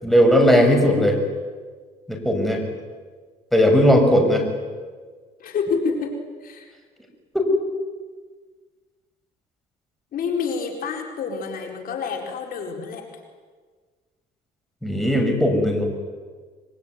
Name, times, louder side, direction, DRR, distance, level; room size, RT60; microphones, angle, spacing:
voice 1, 0.0-1.2 2.1-2.6 3.5-4.4 7.3-7.4 14.8-15.8, equal, ahead, 2 dB, 6.3 m, -17 dB
voice 2, 5.4-6.7 10.1-13.1, left 5 dB, 60° left, 2 dB, 4.6 m, -28 dB
25.5 x 23.5 x 9.6 m, 1.5 s
cardioid pair, 110°, 17 cm